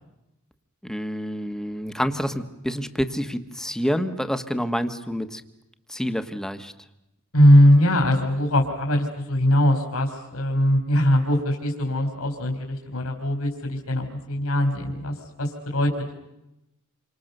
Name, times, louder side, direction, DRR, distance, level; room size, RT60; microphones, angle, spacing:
voice 1, 0.8-5.4 5.9-6.7, equal, ahead, 8 dB, 1.4 m, -28 dB
voice 2, 7.3-16.2, equal, 70° left, 3 dB, 3.7 m, -21 dB
28.5 x 25.5 x 6.7 m, 0.90 s
head